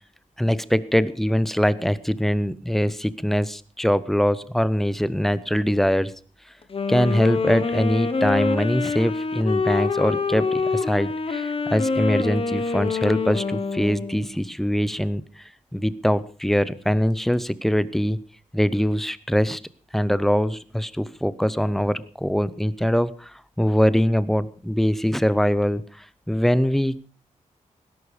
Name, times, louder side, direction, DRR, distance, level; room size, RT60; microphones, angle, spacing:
voice 1, 0.4-6.1 6.9-18.2 18.5-19.6 19.9-27.0, equal, ahead, 17 dB, 0.7 m, -23 dB
Wind instrument woodwind instrument, 6.6-14.3, left 4 dB, 45° left, 1.4 m, -25 dB
18.0 x 11.0 x 5.0 m, 0.39 s
wide cardioid pair, 135°, 14 cm